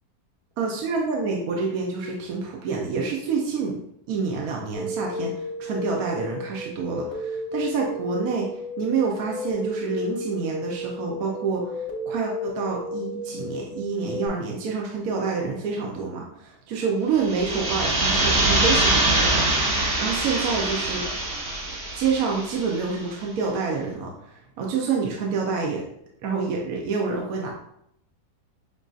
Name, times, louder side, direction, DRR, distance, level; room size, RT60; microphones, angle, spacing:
voice 1, 0.6-3.8 4.1-19.5 20.0-21.1 21.9-25.8 26.2-27.5, right 5 dB, 70° right, -1 dB, 1.1 m, -27 dB
sound 1, 4.7-14.3, left 2 dB, 30° left, 0.6 m, -33 dB
sound 2, 17.2-22.8, right 2 dB, 45° right, 1.1 m, -24 dB
6.1 x 2.6 x 2.4 m, 0.74 s
omnidirectional pair, 1.7 m